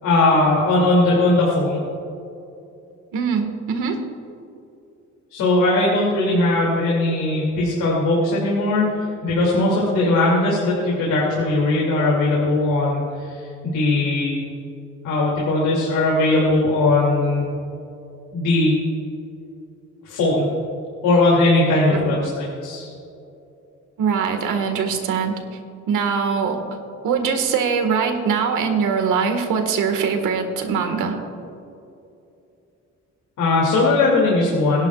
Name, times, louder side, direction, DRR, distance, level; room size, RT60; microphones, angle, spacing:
voice 1, 0.0-1.8 5.3-14.4 15.0-17.5 18.3-18.8 20.0-20.5 21.0-22.9 33.4-34.9, left 2 dB, 85° left, -4 dB, 2.8 m, -19 dB
voice 2, 3.1-4.0 21.9-22.1 24.0-25.3 25.9-26.6 27.0-31.2, right 6 dB, 85° right, 5 dB, 1.8 m, -22 dB
22.5 x 11.0 x 2.4 m, 2.7 s
cardioid pair, 90°, 30 cm